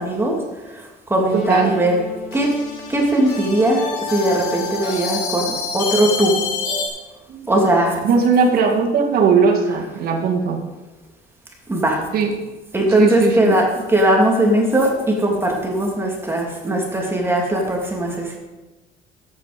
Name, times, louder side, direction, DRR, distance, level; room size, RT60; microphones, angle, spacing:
voice 1, 0.0-2.0 2.3-2.5 2.9-3.8 4.1-6.4 7.5-8.0 9.7-9.9 11.7-12.0 12.7-18.4, right 1 dB, 15° right, -1 dB, 2.7 m, -19 dB
sound 1, 1.3-6.9, left 5 dB, 80° left, 4.8 m, -28 dB
voice 2, 1.3-1.7 7.3-7.5 8.0-10.6 12.1-12.3 13.0-13.6, right 5 dB, 65° right, 0 dB, 2.1 m, -18 dB
12.0 x 8.7 x 5.2 m, 1.1 s
cardioid pair, 110°, 17 cm